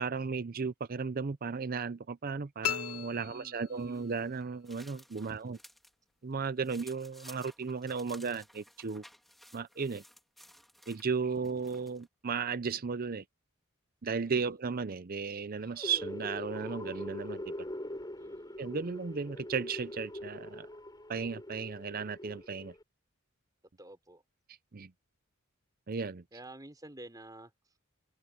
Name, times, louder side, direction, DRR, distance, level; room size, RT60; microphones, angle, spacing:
voice 1, 0.0-5.6 6.2-9.0 9.5-10.0 10.9-13.2 14.0-17.5 18.6-20.7 21.1-22.7 24.7-24.9 25.9-26.2, right 5 dB, 40° right, 0.6 m, -35 dB
sound 1, 2.6-4.2, left 11 dB, 85° left, 0.5 m, -37 dB
voice 2, 3.1-4.1 5.2-5.6 11.3-11.6 14.2-14.6 18.2-18.6 23.8-24.2 26.3-27.7, right 1 dB, 15° right, 4.1 m, -52 dB
sound 2, 3.8-5.9 6.3-12.1, equal, ahead, 3.3 m, -56 dB
sound 3, 15.6-22.8, left 1 dB, 20° left, 6.5 m, -43 dB
open air
head